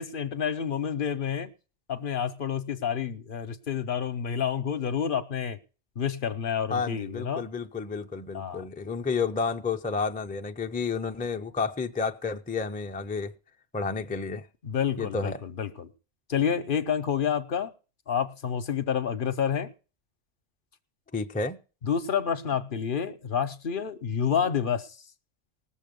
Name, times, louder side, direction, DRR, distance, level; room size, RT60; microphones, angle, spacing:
voice 1, 0.0-1.5 1.9-5.6 6.0-7.5 8.3-8.6 14.6-15.9 16.3-17.7 18.1-19.7 21.8-24.9, left 8 dB, 50° left, 0.8 m, -29 dB
voice 2, 6.7-13.3 13.7-14.5 15.0-15.4 21.1-21.6, left 4 dB, 15° left, 0.3 m, -31 dB
19.0 x 7.1 x 5.2 m
omnidirectional pair, 1.2 m